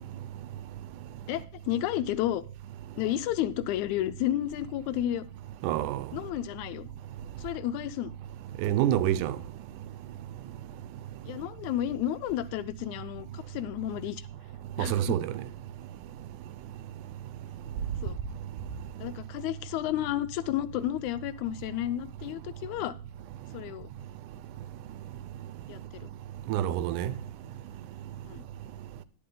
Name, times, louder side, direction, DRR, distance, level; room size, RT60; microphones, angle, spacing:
voice 1, 1.3-2.4 3.0-5.2 6.1-6.9 7.4-8.1 11.3-14.3 14.8-15.2 18.0-18.2 19.0-22.9 23.5-23.9 25.7-26.1 28.2-28.4, left 13 dB, 80° left, 1.9 m, -32 dB
voice 2, 5.6-6.0 8.6-9.4 14.8-15.3 26.5-27.1, right 12 dB, 85° right, 2.1 m, -27 dB
10.0 x 9.5 x 3.8 m
omnidirectional pair, 3.5 m